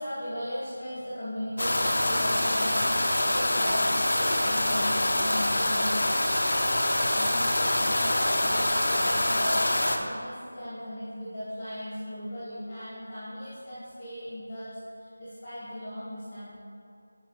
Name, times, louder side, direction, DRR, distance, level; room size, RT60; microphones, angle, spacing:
voice 1, 0.0-9.6 10.0-16.5, equal, 20° left, -12 dB, 1.6 m, -37 dB
sound 1, 1.6-10.0, left 1 dB, 65° left, 0.8 m, -25 dB
11.0 x 4.5 x 3.1 m, 2.5 s
figure-of-eight pair, 175°, 0 cm